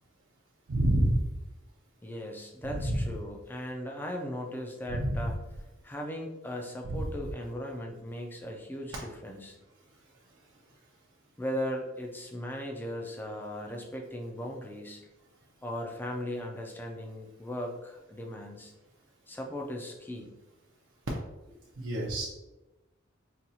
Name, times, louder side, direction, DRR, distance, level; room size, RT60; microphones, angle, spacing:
voice 1, 0.7-1.2 2.7-3.1 4.9-5.3 6.8-7.1 21.8-22.3, right 1 dB, 65° right, -4 dB, 0.5 m, -28 dB
voice 2, 2.0-5.4 5.8-9.6 11.4-15.0 15.6-18.7 19.3-20.3, equal, 10° left, 1 dB, 0.4 m, -38 dB
4.1 x 2.3 x 2.6 m, 1.0 s
head